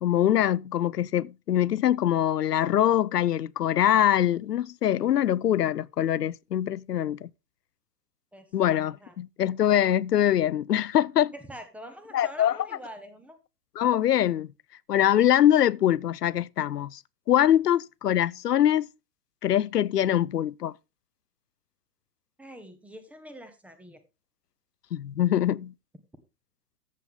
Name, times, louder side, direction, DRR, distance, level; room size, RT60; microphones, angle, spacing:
voice 1, 0.0-7.3 8.5-11.3 12.1-12.6 13.8-14.5 14.9-17.0 17.3-18.9 19.4-20.7 24.9-25.7, left 11 dB, 75° left, 0.5 m, -23 dB
voice 2, 8.8-9.1 11.3-13.4 22.4-24.0, equal, 5° right, 0.6 m, -45 dB
13.5 x 6.9 x 3.5 m
figure-of-eight pair, 110°, 49 cm